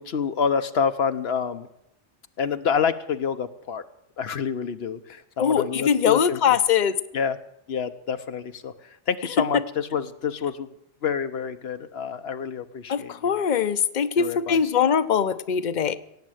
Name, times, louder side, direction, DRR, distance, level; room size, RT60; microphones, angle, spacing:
voice 1, 0.0-1.7 2.4-3.8 4.2-6.4 7.1-7.4 7.7-10.7 11.0-13.3 14.2-14.6, left 6 dB, 70° left, 10 dB, 1.0 m, -27 dB
voice 2, 5.4-7.0 9.5-9.6 12.9-15.9, left 7 dB, 45° left, 14 dB, 0.8 m, -22 dB
17.5 x 7.5 x 9.1 m, 0.80 s
omnidirectional pair, 1.1 m